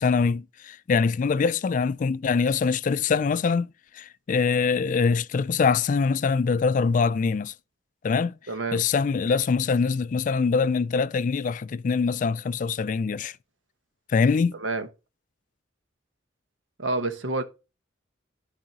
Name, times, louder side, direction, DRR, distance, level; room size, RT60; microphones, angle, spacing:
voice 1, 0.0-3.7 3.9-7.5 8.0-8.4 8.7-13.4 14.1-14.6, left 5 dB, 45° left, 0.3 m, -23 dB
voice 2, 8.5-8.8 14.6-14.9 16.8-17.4, right 2 dB, 85° right, 1.1 m, -28 dB
13.0 x 4.8 x 2.9 m
head